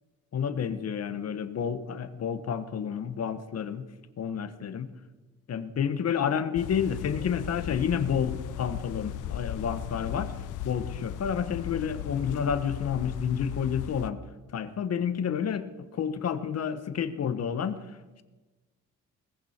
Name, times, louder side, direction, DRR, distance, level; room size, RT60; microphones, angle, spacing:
voice 1, 0.3-3.9 4.2-4.9 5.5-10.3 10.6-14.2 14.5-18.2, left 7 dB, 55° left, 11 dB, 1.3 m, -30 dB
sound 1, 6.6-14.1, left 11 dB, 80° left, 0.8 m, -37 dB
19.0 x 15.5 x 4.5 m, 1.2 s
cardioid pair, 90°, 30 cm